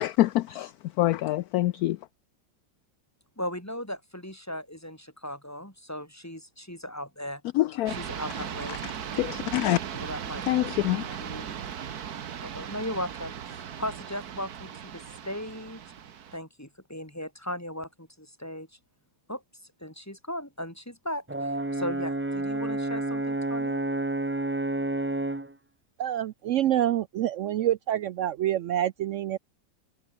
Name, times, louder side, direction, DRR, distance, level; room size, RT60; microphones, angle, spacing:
voice 1, 0.0-2.0 7.5-7.9 8.7-8.9 9.2-9.8 10.5-11.2, left 15 dB, 70° left, 0.9 m, -26 dB
voice 2, 3.4-7.4 8.0-8.8 10.0-10.4 11.2-11.5 12.4-15.8 16.3-18.7 19.3-19.4 19.8-23.8, left 1 dB, 10° left, 4.6 m, -37 dB
sound 1, 7.9-16.4, right 8 dB, 60° right, 1.7 m, -38 dB
Brass instrument, 21.3-25.5, right 2 dB, 15° right, 0.4 m, -29 dB
voice 3, 26.0-29.4, right 12 dB, 85° right, 0.6 m, -27 dB
omnidirectional pair, 1.9 m